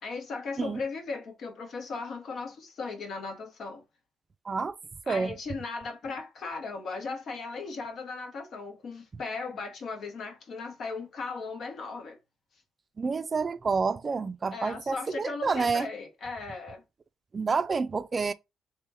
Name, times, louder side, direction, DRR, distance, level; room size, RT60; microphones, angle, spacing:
voice 1, 0.0-3.8 5.1-12.2 14.5-16.8, left 4 dB, 60° left, 1.1 m, -37 dB
voice 2, 4.5-4.8 5.1-5.3 13.0-15.9 17.3-18.3, right 4 dB, 35° right, 0.4 m, -28 dB
3.2 x 3.0 x 3.4 m
cardioid pair, 90°, 0 cm